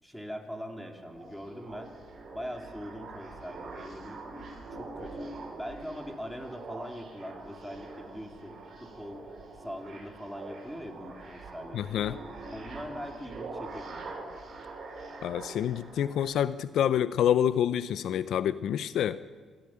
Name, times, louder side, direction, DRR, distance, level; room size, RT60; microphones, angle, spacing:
voice 1, 0.0-1.9 2.3-4.2 4.7-9.2 9.6-11.8 12.5-14.1, equal, 5° left, 4 dB, 3.3 m, -42 dB
sound 1, 1.0-16.3, right 3 dB, 50° right, 6.5 m, -44 dB
voice 2, 11.7-12.2 15.2-19.2, left 10 dB, 75° left, 15 dB, 0.7 m, -27 dB
25.5 x 14.5 x 8.9 m, 1.5 s
cardioid pair, 90°, 0 cm